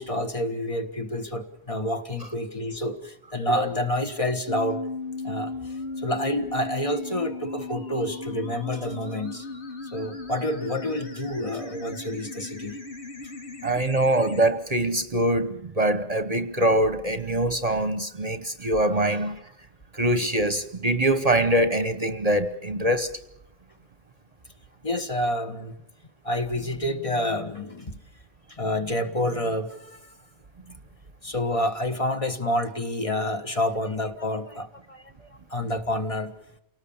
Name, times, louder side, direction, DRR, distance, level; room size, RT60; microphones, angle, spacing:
voice 1, 0.0-4.8 5.2-9.5 9.8-12.8 24.8-25.7 26.2-27.9 28.5-30.1 31.2-36.3, left 1 dB, 30° left, 1.4 m, -28 dB
sound 1, 4.5-14.5, left 3 dB, 80° left, 2.9 m, -36 dB
voice 2, 13.6-19.3 20.0-23.1, right 1 dB, 40° right, 1.0 m, -23 dB
28.5 x 18.5 x 7.2 m
omnidirectional pair, 1.1 m